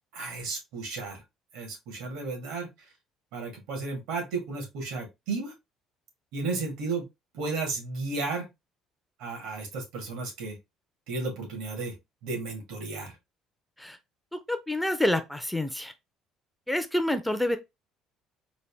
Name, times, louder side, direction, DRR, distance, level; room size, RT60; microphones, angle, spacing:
voice 1, 0.1-1.2 1.5-2.7 3.3-5.5 6.3-7.0 7.3-8.5 9.2-10.6 11.1-12.0 12.2-13.2, right 3 dB, 90° right, 1.8 m, -33 dB
voice 2, 14.5-15.9 16.7-17.6, left 1 dB, ahead, 0.3 m, -27 dB
4.0 x 2.4 x 3.4 m
cardioid pair, 180°, 0 cm